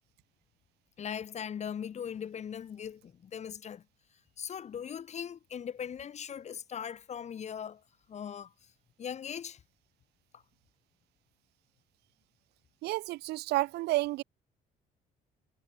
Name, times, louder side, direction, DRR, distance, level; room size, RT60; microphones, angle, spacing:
voice 1, 1.0-3.8 4.4-7.8 8.1-8.7 9.0-9.6 10.3-10.4, left 8 dB, 40° left, 1.3 m, -40 dB
voice 2, 12.8-14.2, right 19 dB, 75° right, 0.5 m, -30 dB
cardioid pair, 110°, 17 cm